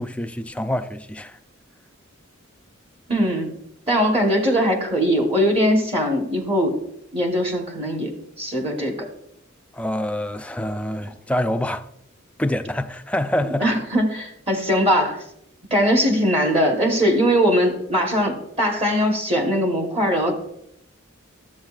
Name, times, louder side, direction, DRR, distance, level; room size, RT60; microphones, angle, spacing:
voice 1, 0.0-1.4 9.7-11.9 12.4-13.7, left 1 dB, 5° left, 0.3 m, -26 dB
voice 2, 3.1-3.5 3.9-6.7 7.1-8.1 8.4-9.0 13.6-15.2 15.7-20.3, equal, 30° right, 1.1 m, -20 dB
13.0 x 7.8 x 2.4 m
head